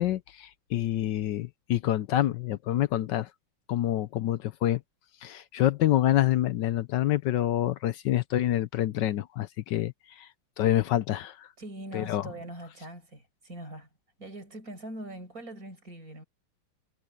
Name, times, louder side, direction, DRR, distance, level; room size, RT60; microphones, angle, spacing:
voice 1, 0.0-3.3 3.7-4.8 5.2-10.3 10.6-11.5 11.9-12.3, left 13 dB, 70° left, 1.1 m, -27 dB
voice 2, 11.6-13.9 14.2-16.2, right 1 dB, 40° right, 6.8 m, -42 dB
omnidirectional pair, 2.4 m